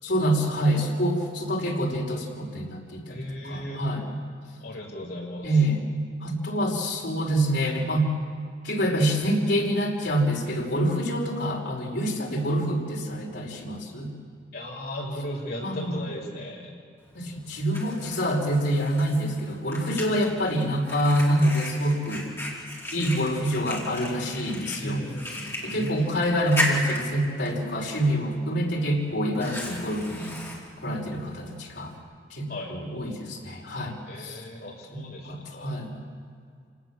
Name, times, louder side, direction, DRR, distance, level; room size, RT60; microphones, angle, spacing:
voice 1, 0.0-4.2 5.4-5.8 6.2-8.1 8.6-14.1 15.6-16.0 17.1-22.3 22.9-25.0 25.6-30.4 30.8-31.9 32.3-34.4 34.9-36.0, equal, 80° left, -1 dB, 5.1 m, -26 dB
voice 2, 3.1-3.8 4.6-5.5 14.5-16.7 24.8-26.4 32.5-32.7 34.1-35.7, equal, 60° left, -2 dB, 6.8 m, -36 dB
Fire, 17.0-32.0, left 1 dB, 15° left, 4.6 m, -36 dB
28.5 x 18.5 x 7.4 m, 2.3 s
head